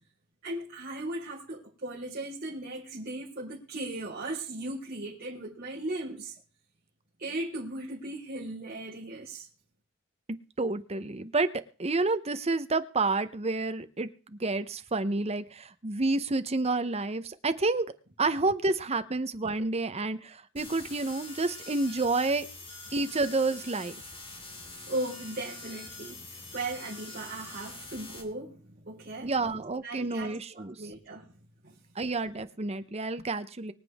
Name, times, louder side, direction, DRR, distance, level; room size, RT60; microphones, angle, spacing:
voice 1, 0.4-6.3 7.2-9.5 24.4-29.3 29.8-31.3 31.6-31.7, right 2 dB, 45° right, 4.7 m, -37 dB
voice 2, 10.3-11.5 11.8-17.9 18.2-22.5 22.9-24.0 29.2-30.8 32.0-33.7, right 3 dB, 30° right, 0.9 m, -29 dB
sound 1, 20.6-28.2, left 2 dB, 25° left, 2.8 m, -45 dB
24.5 x 8.2 x 3.6 m
head